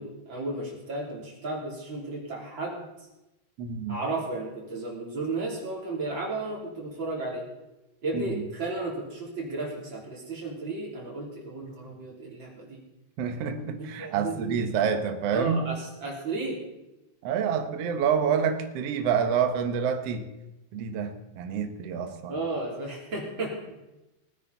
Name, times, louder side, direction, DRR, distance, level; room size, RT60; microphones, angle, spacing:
voice 1, 0.0-2.8 3.9-7.5 8.0-12.8 14.0-14.6 15.3-16.6 22.3-23.6, right 2 dB, 30° right, -3 dB, 3.6 m, -33 dB
voice 2, 3.6-4.0 8.1-8.4 13.2-15.6 17.2-20.3 20.7-22.4, right 7 dB, 70° right, 6 dB, 1.5 m, -28 dB
19.5 x 9.9 x 4.1 m, 0.97 s
omnidirectional pair, 4.6 m